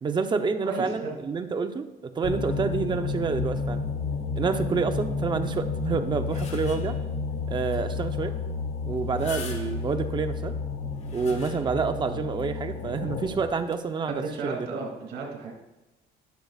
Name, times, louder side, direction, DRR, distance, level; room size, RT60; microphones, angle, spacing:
voice 1, 0.0-3.8 4.4-7.0 7.5-8.3 8.9-10.5 11.1-14.8, right 5 dB, 25° right, 7 dB, 0.7 m, -28 dB
voice 2, 0.6-1.2 14.1-15.5, right 4 dB, 85° right, 0 dB, 2.5 m, -34 dB
sound 1, 2.2-13.5, left 4 dB, 85° left, 3.4 m, -31 dB
Screechy Toaster Oven, 6.2-7.1 7.7-7.8 8.1-8.2 9.0-10.0 10.7-11.9 12.4-12.5 13.6-13.8, left 4 dB, 40° left, 1.6 m, -43 dB
20.0 x 6.7 x 2.4 m, 1.0 s
cardioid pair, 110°, 17 cm